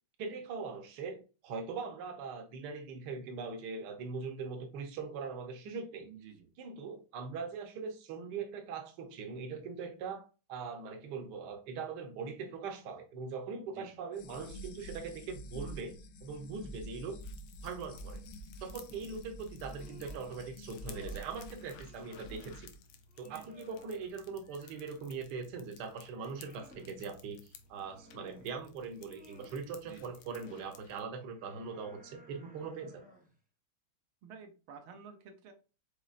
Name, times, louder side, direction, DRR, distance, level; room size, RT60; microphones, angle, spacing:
voice 1, 0.2-6.1 6.6-16.0 16.2-17.2 17.6-18.2 18.6-22.7 23.2-33.0, right 5 dB, 60° right, 1.3 m, -41 dB
voice 2, 6.0-6.5 13.7-14.0 18.9-19.1 23.2-23.6 29.8-30.1 34.2-35.5, right 6 dB, 85° right, 1.7 m, -52 dB
sound 1, 14.1-22.8, equal, 75° left, 1.3 m, -48 dB
sound 2, 17.2-31.0, left 6 dB, 90° left, 1.5 m, -57 dB
sound 3, 19.5-20.4 20.7-21.4 21.8-22.6 23.1-25.1 25.6-27.0 27.6-28.5 28.9-29.6 30.1-30.7 31.2-33.4, equal, 10° right, 0.3 m, -59 dB
5.3 x 4.0 x 2.4 m
omnidirectional pair, 2.2 m